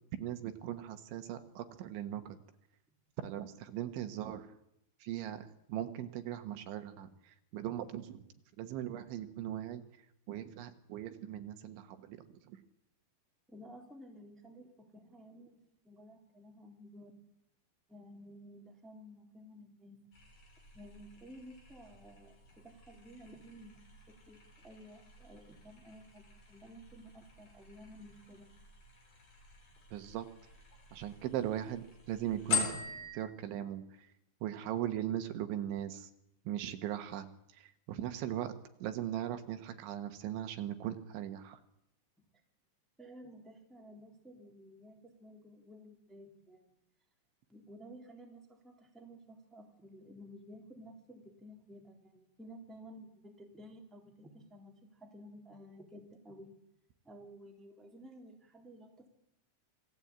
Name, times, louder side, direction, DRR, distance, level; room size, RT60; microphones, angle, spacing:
voice 1, 0.2-2.4 3.2-4.5 5.0-8.2 8.6-9.8 10.3-12.6 29.9-30.3 30.9-32.8 33.1-34.1 34.4-36.1 36.5-38.5 38.8-41.6, right 11 dB, 75° right, 8 dB, 3.6 m, -39 dB
voice 2, 13.5-15.6 15.8-17.1 17.9-20.0 20.7-23.8 24.3-28.5 43.0-46.8 47.5-56.5 57.0-59.1, equal, ahead, 1 dB, 2.6 m, -54 dB
sound 1, 20.1-33.2, left 6 dB, 45° left, 5.3 m, -44 dB
27.0 x 18.0 x 8.8 m, 0.79 s
omnidirectional pair, 5.5 m